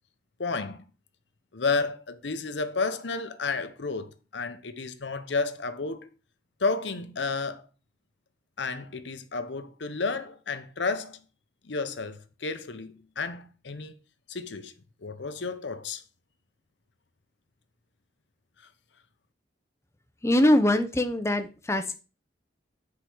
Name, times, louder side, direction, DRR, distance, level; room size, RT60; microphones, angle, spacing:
voice 1, 0.4-0.8 1.5-6.1 6.6-7.7 8.6-11.2 11.6-13.9 14.3-14.7 15.0-16.0, left 4 dB, 85° left, 0.8 m, -31 dB
voice 2, 20.2-21.9, left 1 dB, 15° left, 0.7 m, -23 dB
8.3 x 4.9 x 4.6 m
head